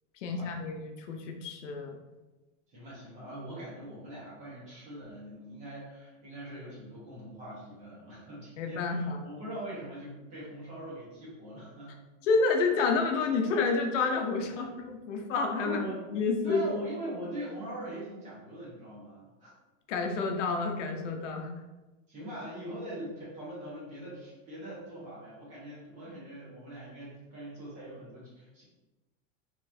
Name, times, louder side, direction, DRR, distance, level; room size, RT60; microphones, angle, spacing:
voice 1, 0.2-2.0 8.6-9.2 12.3-15.8 16.1-16.7 19.9-21.5, left 4 dB, 75° left, 3 dB, 0.7 m, -29 dB
voice 2, 2.7-11.9 15.6-16.0 16.4-19.5 22.1-28.6, equal, 20° right, -7 dB, 1.0 m, -42 dB
3.9 x 3.1 x 2.6 m, 1.1 s
supercardioid pair, 175°, 37 cm